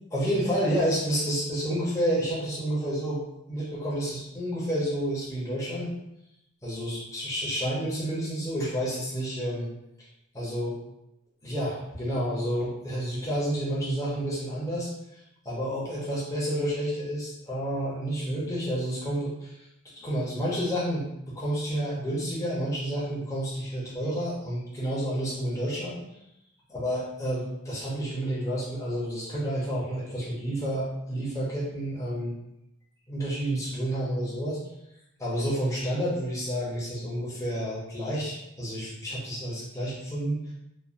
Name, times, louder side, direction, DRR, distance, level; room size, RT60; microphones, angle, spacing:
voice 1, 0.1-5.9 6.6-9.7 10.3-10.8 11.4-14.9 15.4-19.6 19.9-26.0 26.7-32.3 33.1-34.6 35.2-40.4, equal, 15° left, -7 dB, 0.7 m, -30 dB
3.1 x 2.0 x 2.5 m, 0.84 s
head